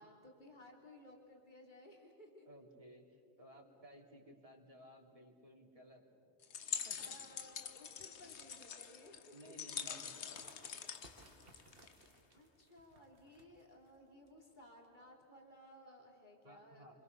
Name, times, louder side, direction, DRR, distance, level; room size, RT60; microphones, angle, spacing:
voice 1, 0.0-2.5 3.2-3.7 7.0-9.3 10.7-10.9 12.3-17.0, left 1 dB, 45° left, 0 dB, 3.6 m, -59 dB
voice 2, 2.5-6.4 6.8-7.1 9.3-10.7 16.4-17.0, equal, 30° right, 0 dB, 3.2 m, -58 dB
sound 1, 6.4-12.1, left 7 dB, 75° left, 1.3 m, -45 dB
sound 2, 9.9-15.1, right 2 dB, 55° right, 2.1 m, -65 dB
29.0 x 25.5 x 6.8 m, 2.6 s
omnidirectional pair, 1.1 m